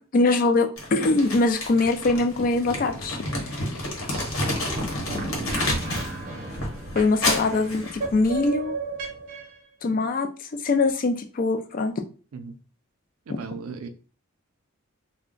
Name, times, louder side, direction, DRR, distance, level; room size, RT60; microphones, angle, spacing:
voice 1, 0.1-3.2 7.0-8.7 9.8-10.3 10.6-11.9, left 3 dB, 40° left, 0.3 m, -22 dB
Crumpling crinkling, 0.8-6.2 6.5-8.5, left 1 dB, 75° left, 1.0 m, -30 dB
sound 1, 4.4-9.6, right 2 dB, 40° right, 0.8 m, -34 dB
voice 2, 13.3-13.9, right 5 dB, 80° right, 0.4 m, -37 dB
2.4 x 2.1 x 3.7 m
head